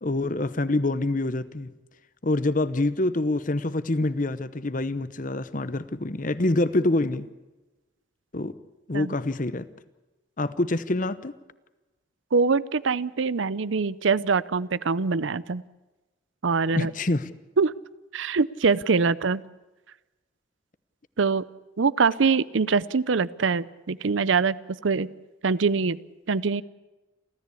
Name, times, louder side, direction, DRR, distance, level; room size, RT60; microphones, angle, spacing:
voice 1, 0.0-1.7 2.2-7.3 8.3-8.5 8.9-9.7 10.4-11.3 16.8-17.3, left 2 dB, 45° left, 14 dB, 0.9 m, -26 dB
voice 2, 12.3-15.6 16.4-16.9 17.6-17.7 18.1-19.4 21.2-21.4 21.8-24.6 24.8-25.1 25.4-26.0 26.3-26.6, right 4 dB, 80° right, 19 dB, 0.6 m, -23 dB
29.0 x 13.5 x 8.4 m, 1.1 s
head